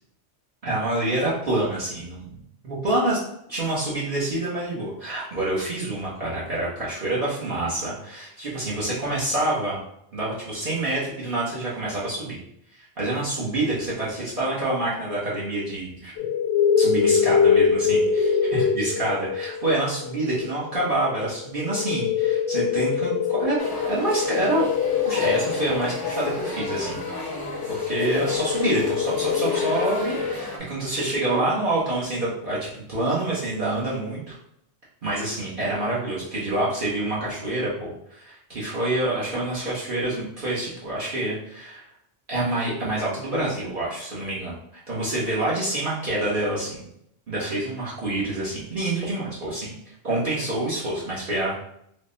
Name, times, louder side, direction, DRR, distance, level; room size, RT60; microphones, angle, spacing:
voice 1, 0.6-2.4 2.6-3.2 3.5-9.8 10.1-12.4 12.7-16.2 16.8-23.6 23.8-24.6 25.1-27.2 27.7-34.3 35.0-41.8 42.3-44.6 44.9-46.8 47.3-49.7 50.0-51.5, right 2 dB, 45° right, -8 dB, 1.0 m, -27 dB
sound 1, 16.2-30.3, left 7 dB, 70° left, 0.8 m, -24 dB
sound 2, 23.6-30.6, left 1 dB, 25° left, 0.6 m, -33 dB
3.6 x 2.1 x 3.8 m, 0.73 s
omnidirectional pair, 1.3 m